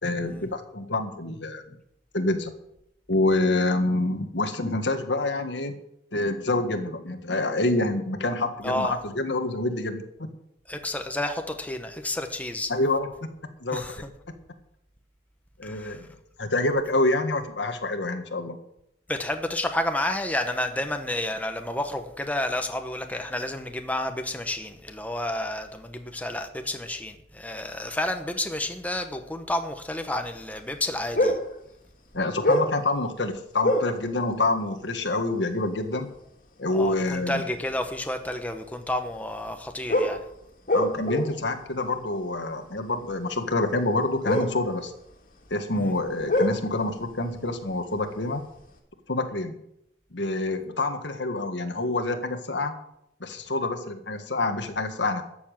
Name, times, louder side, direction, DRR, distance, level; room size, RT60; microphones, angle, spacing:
voice 1, 0.0-1.6 2.1-2.5 3.1-5.8 6.1-10.3 12.7-13.1 13.6-13.8 15.6-16.1 16.4-18.6 32.1-36.1 36.6-37.4 40.7-44.9 45.5-48.4 49.1-49.5 50.1-52.7 53.2-55.2, left 2 dB, 90° left, 1.7 m, -27 dB
voice 2, 8.6-9.0 10.7-12.7 13.7-14.1 15.6-16.0 19.1-31.4 36.7-40.2 45.7-45.9, left 1 dB, 10° left, 1.1 m, -30 dB
sound 1, 31.1-31.6 32.1-32.9 33.6-34.0 35.1-35.2 35.8-36.0 37.8-37.9 39.9-41.5 41.8-41.9 44.2-45.5 45.8-48.1 48.4-48.6, left 1 dB, 50° left, 2.3 m, -25 dB
13.0 x 7.3 x 9.0 m
head